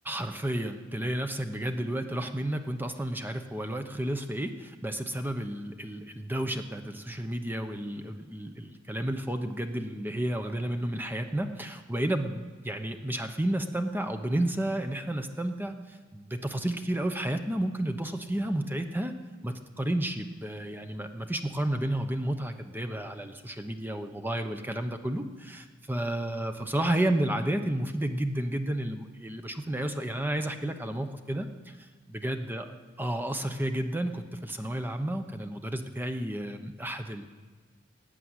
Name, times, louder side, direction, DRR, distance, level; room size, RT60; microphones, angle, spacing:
voice 1, 0.1-19.1 19.4-32.7 33.0-37.2, right 1 dB, 10° right, 7 dB, 1.0 m, -31 dB
18.0 x 7.8 x 9.7 m, 1.5 s
head